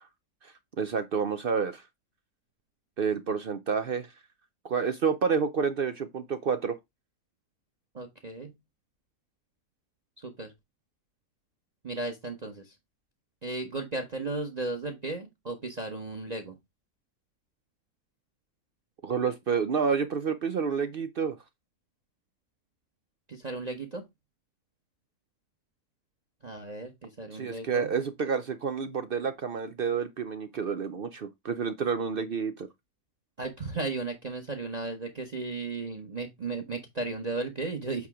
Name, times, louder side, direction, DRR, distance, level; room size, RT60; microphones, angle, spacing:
voice 1, 0.4-1.8 3.0-4.1 4.6-6.8 19.0-21.3 27.3-32.7, right 6 dB, 65° right, 0.5 m, -29 dB
voice 2, 7.9-8.5 10.2-10.5 11.8-12.8 13.4-16.5 23.3-24.0 26.4-27.9 33.4-38.1, right 3 dB, 30° right, 1.0 m, -35 dB
8.3 x 2.9 x 4.8 m
omnidirectional pair, 1.7 m